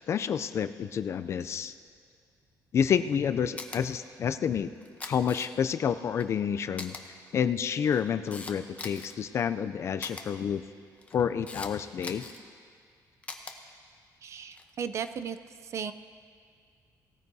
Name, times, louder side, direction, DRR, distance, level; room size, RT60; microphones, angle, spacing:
voice 1, 0.1-1.7 2.7-4.7 5.1-6.9 7.3-10.6 11.1-12.2, left 7 dB, 40° left, 12 dB, 0.3 m, -29 dB
Camera, 3.6-3.8 4.8-5.8 6.2-6.3 6.8-7.0 7.7-9.1 10.0-10.2 11.0-11.7 12.0-12.4 13.2-13.5 14.4-14.7, left 3 dB, 20° left, 0.8 m, -41 dB
voice 2, 14.2-15.4 15.6-15.9, right 7 dB, 45° right, 11 dB, 0.4 m, -35 dB
18.0 x 13.5 x 2.7 m, 2.1 s
cardioid pair, 160°, 7 cm